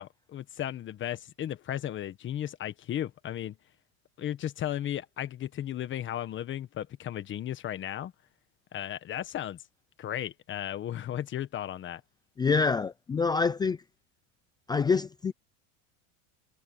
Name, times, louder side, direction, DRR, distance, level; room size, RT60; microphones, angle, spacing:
voice 1, 0.0-3.6 4.2-8.1 8.7-9.6 10.0-12.0, left 11 dB, 25° left, 1.4 m, -35 dB
voice 2, 12.4-13.8 14.7-15.3, left 5 dB, 10° left, 0.4 m, -26 dB
supercardioid pair, 155°, 42 cm